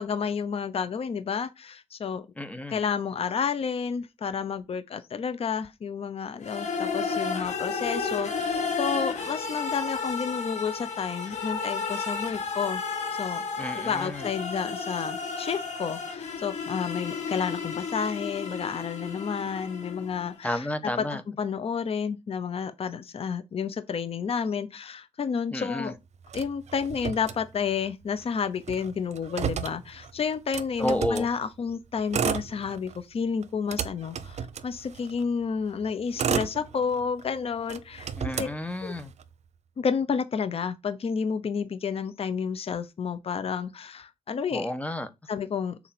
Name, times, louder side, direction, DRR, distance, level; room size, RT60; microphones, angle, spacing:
voice 1, 0.0-2.3 2.7-12.8 13.1-13.4 13.8-26.0 26.3-38.1 38.4-38.5 38.8-38.9 39.8-44.7 45.3-45.8, left 6 dB, 55° left, 0.9 m, -31 dB
voice 2, 2.4-2.8 13.6-14.3 20.4-21.2 25.5-25.9 30.8-31.3 38.2-39.1 44.5-45.1, left 1 dB, 10° left, 1.2 m, -31 dB
sound 1, 6.4-20.3, left 5 dB, 80° left, 2.3 m, -32 dB
Motor vehicle (road), 26.3-27.9 28.2-28.3 28.5-31.3 32.0-33.0 33.4-35.2 35.8-37.2 37.6-39.2, right 7 dB, 70° right, 0.8 m, -32 dB
6.8 x 4.4 x 6.0 m
wide cardioid pair, 120°, 12 cm